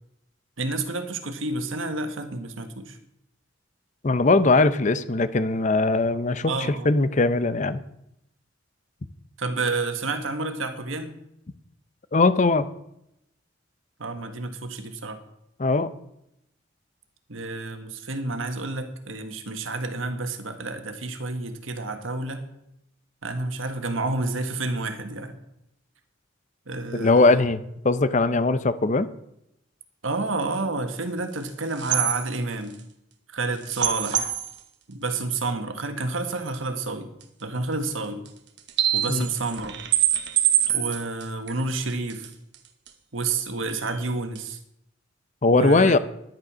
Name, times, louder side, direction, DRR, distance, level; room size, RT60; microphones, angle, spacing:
voice 1, 0.6-3.0 6.4-6.9 9.4-11.1 14.0-15.2 17.3-22.5 23.2-25.4 26.7-27.4 30.0-32.8 33.3-34.3 34.9-37.1 37.4-38.2 38.9-39.7 40.7-42.3 43.1-44.6 45.5-45.9, right 3 dB, 85° right, 7 dB, 1.5 m, -29 dB
voice 2, 4.0-7.8 12.1-12.7 15.6-15.9 26.9-29.1 39.1-39.3 45.4-46.0, left 3 dB, 40° left, 14 dB, 0.6 m, -20 dB
sound 1, 31.5-31.6 31.8-32.3 33.6-34.5 36.5-36.6 37.2-37.3 38.2-38.3 38.6-42.2 42.5-42.6 42.9-43.0 43.3-43.4 43.7-44.0 44.3-44.4, right 11 dB, 60° right, 1.3 m, -24 dB
10.5 x 10.0 x 6.2 m, 0.82 s
head